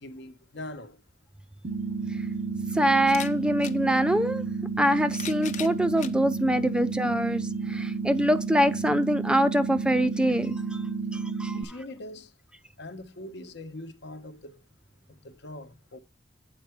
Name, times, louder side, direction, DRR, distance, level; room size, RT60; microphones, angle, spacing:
voice 1, 0.0-1.0 11.5-12.3 12.8-14.6 15.2-16.0, left 1 dB, 65° left, 1.0 m, -42 dB
sound 1, 1.6-1.7 3.0-3.8 4.8-6.2 6.9-7.0 8.3-8.4, left 9 dB, 40° left, 0.7 m, -39 dB
sound 2, 1.6-11.6, right 4 dB, 45° right, 0.6 m, -31 dB
voice 2, 2.7-4.4 4.8-10.8 11.1-11.6, equal, 5° right, 0.4 m, -24 dB
8.7 x 4.7 x 4.5 m
head